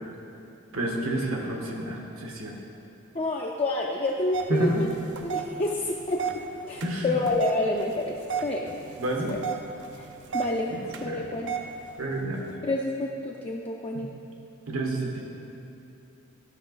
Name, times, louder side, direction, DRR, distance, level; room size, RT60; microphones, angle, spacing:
voice 1, 0.7-2.6 4.5-4.8 6.8-7.2 9.0-9.3 10.7-11.2 12.0-12.6 14.7-15.3, right 1 dB, 80° right, -1 dB, 1.4 m, -29 dB
voice 2, 3.1-4.9 5.2-8.2 8.4-8.7 9.3-9.4 10.0-10.1 10.3-10.7 11.0-11.6 12.6-14.1, left 2 dB, 30° left, -1 dB, 0.5 m, -28 dB
sound 1, 4.3-12.6, right 7 dB, 60° right, 0.6 m, -36 dB
11.5 x 5.7 x 4.0 m, 2.9 s
head